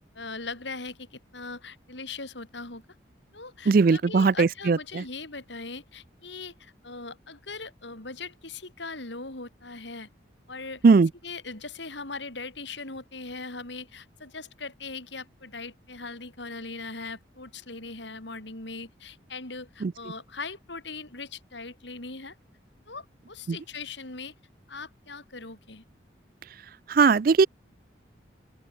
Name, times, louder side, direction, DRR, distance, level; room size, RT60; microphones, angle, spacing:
voice 1, 0.0-2.8 3.3-10.1 10.5-10.8 11.2-22.3 22.9-24.3 24.7-25.8, left 3 dB, 70° left, 4.2 m, -40 dB
voice 2, 3.7-5.0 10.8-11.1 19.8-19.9 23.5-23.6 26.9-27.5, right 4 dB, 50° right, 0.4 m, -19 dB
open air
head